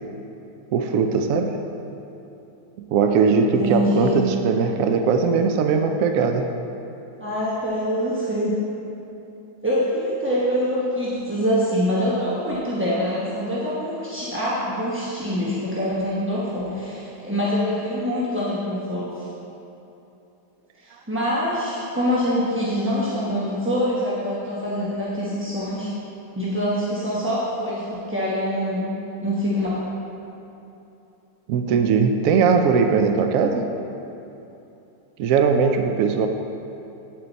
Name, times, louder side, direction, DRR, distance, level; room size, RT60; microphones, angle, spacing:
voice 1, 0.7-1.5 2.9-6.5 31.5-33.7 35.2-36.3, right 5 dB, 80° right, 5 dB, 0.7 m, -20 dB
voice 2, 3.5-4.1 7.2-8.6 9.6-19.2 21.1-25.9 26.4-28.9 29.2-29.7, equal, 10° right, -8 dB, 0.6 m, -24 dB
8.6 x 7.7 x 4.0 m, 2.9 s
omnidirectional pair, 2.0 m